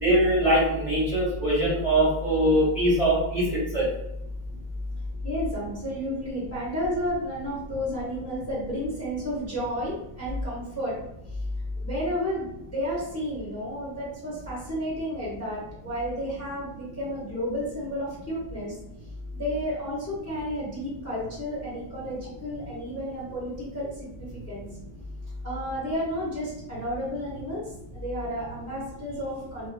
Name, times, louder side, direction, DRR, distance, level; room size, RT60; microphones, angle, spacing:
voice 1, 0.0-3.9, right 1 dB, 35° right, -9 dB, 0.6 m, -22 dB
voice 2, 5.2-10.9 11.3-11.4 11.7-18.8 19.3-24.1 24.5-24.6 25.4-27.6 27.9-29.7, equal, 20° left, -6 dB, 0.4 m, -32 dB
2.4 x 2.4 x 2.2 m, 0.87 s
omnidirectional pair, 1.6 m